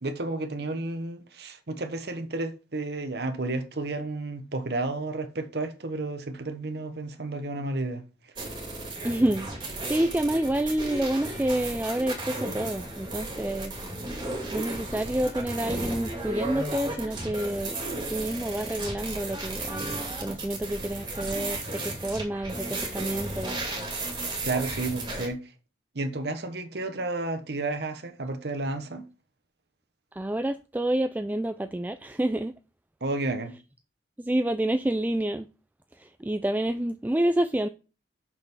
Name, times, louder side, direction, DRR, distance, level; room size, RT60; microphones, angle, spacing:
voice 1, 0.0-8.0 24.4-25.5 25.9-29.1 33.0-33.5, right 2 dB, 65° right, 1.0 m, -32 dB
sound 1, 8.4-25.3, right 2 dB, 25° right, 2.4 m, -34 dB
voice 2, 9.0-13.7 14.5-17.8 18.1-23.6 30.1-32.5 34.2-35.5 35.9-37.7, right 1 dB, 10° right, 0.3 m, -28 dB
6.1 x 5.5 x 6.1 m
head